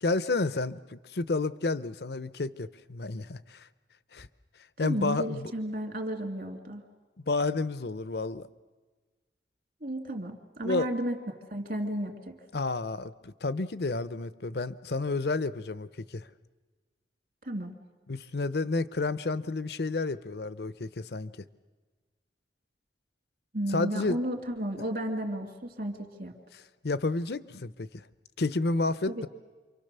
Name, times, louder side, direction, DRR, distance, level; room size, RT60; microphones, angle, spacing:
voice 1, 0.0-3.7 4.1-4.3 4.8-5.5 7.3-8.5 10.6-10.9 12.5-16.3 18.1-21.3 23.7-24.2 26.5-28.1 28.4-29.3, left 3 dB, 65° left, 16 dB, 0.7 m, -31 dB
voice 2, 4.8-6.8 9.8-12.4 17.4-17.7 23.5-26.3 29.1-29.3, right 1 dB, 50° right, 5 dB, 2.6 m, -33 dB
28.0 x 24.5 x 6.8 m, 1.3 s
head